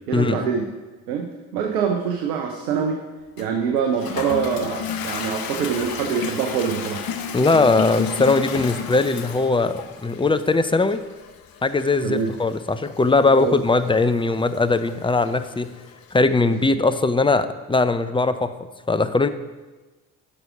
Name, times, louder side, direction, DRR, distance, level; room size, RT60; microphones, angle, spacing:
voice 1, 0.1-0.6 1.1-1.3 1.5-3.0 3.4-7.0 10.2-10.3 12.0-12.3 13.2-13.6 16.4-16.8, right 6 dB, 80° right, 3 dB, 0.9 m, -25 dB
Toilet flush, 3.4-16.2, left 7 dB, 50° left, 1.1 m, -33 dB
voice 2, 7.3-11.0 11.6-15.7 16.1-18.5 18.9-19.3, left 3 dB, 10° left, 10 dB, 0.6 m, -20 dB
11.0 x 6.2 x 4.9 m, 1.2 s
figure-of-eight pair, 45°, 46 cm